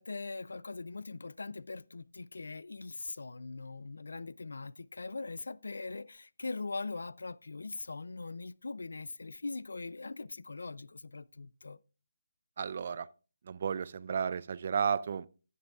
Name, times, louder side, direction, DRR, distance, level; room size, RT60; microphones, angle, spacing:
voice 1, 0.0-11.8, left 3 dB, 80° left, 0.4 m, -41 dB
voice 2, 12.6-13.1 13.4-15.3, right 7 dB, 45° right, 0.4 m, -33 dB
13.0 x 9.3 x 2.3 m
hypercardioid pair, 160°, 0 cm